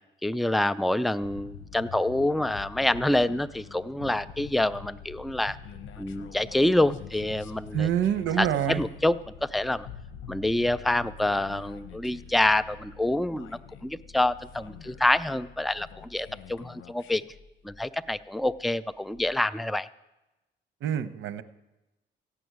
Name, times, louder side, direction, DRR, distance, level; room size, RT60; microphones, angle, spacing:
voice 1, 0.2-5.6 6.0-7.9 8.4-9.9 10.3-17.2 17.6-19.9, left 1 dB, ahead, 14 dB, 0.4 m, -27 dB
sound 1, 1.2-18.6 19.1-19.3, left 7 dB, 75° left, 0.9 m, -45 dB
voice 2, 7.7-8.8 20.8-21.4, right 10 dB, 75° right, 12 dB, 0.9 m, -26 dB
15.0 x 6.1 x 9.3 m, 0.99 s
cardioid pair, 90°, 20 cm